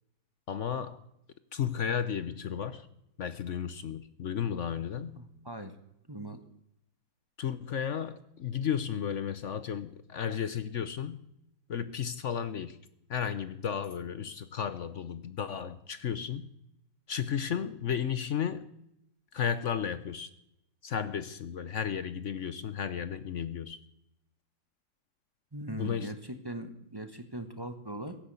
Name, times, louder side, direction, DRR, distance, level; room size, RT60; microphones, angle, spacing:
voice 1, 0.5-1.0 1.5-2.9 3.2-5.2 7.4-11.2 11.7-12.8 13.1-16.5 17.1-18.7 19.3-20.3 20.8-23.8 25.7-26.1, left 8 dB, 55° left, 14 dB, 0.8 m, -33 dB
voice 2, 5.1-5.7 6.1-6.4 25.5-28.2, right 1 dB, 15° right, 8 dB, 1.1 m, -40 dB
16.5 x 10.5 x 8.2 m, 0.80 s
omnidirectional pair, 2.0 m